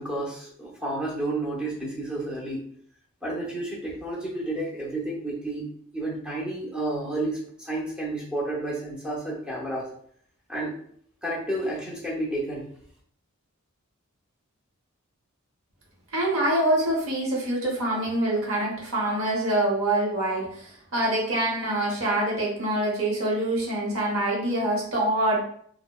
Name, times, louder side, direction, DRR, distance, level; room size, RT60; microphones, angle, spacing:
voice 1, 0.0-2.6 3.2-5.7 5.9-9.9 10.5-10.8 11.2-12.7, right 1 dB, 5° right, -6 dB, 0.7 m, -31 dB
voice 2, 16.1-25.4, right 1 dB, 70° right, -3 dB, 0.9 m, -25 dB
2.7 x 2.0 x 2.2 m, 0.62 s
head